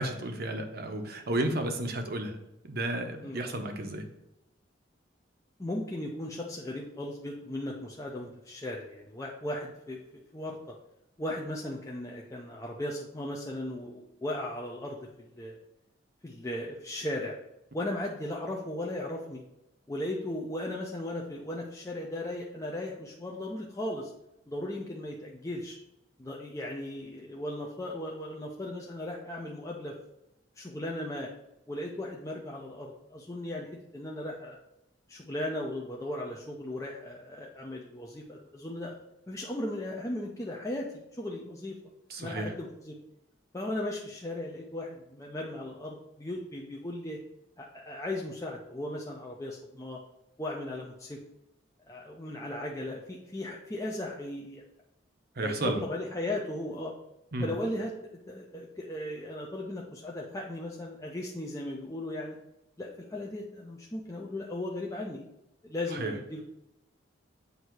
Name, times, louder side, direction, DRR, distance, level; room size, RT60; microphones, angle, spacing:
voice 1, 0.0-2.4 2.6-4.0 42.1-42.5 55.4-55.8 57.3-57.5 65.9-66.2, right 1 dB, 55° right, 5 dB, 0.8 m, -32 dB
voice 2, 3.2-3.6 5.6-10.7 11.2-15.6 16.2-17.3 17.7-19.4 19.9-24.1 24.5-25.8 26.2-29.9 30.6-31.3 31.7-34.6 35.1-38.9 39.3-41.8 42.2-42.9 43.5-47.2 47.6-50.0 50.4-51.2 51.9-54.6 55.4-56.9 57.4-57.9 58.3-62.4 62.8-65.2 65.6-66.4, left 1 dB, 15° left, -2 dB, 0.5 m, -37 dB
8.0 x 2.7 x 4.6 m, 0.87 s
head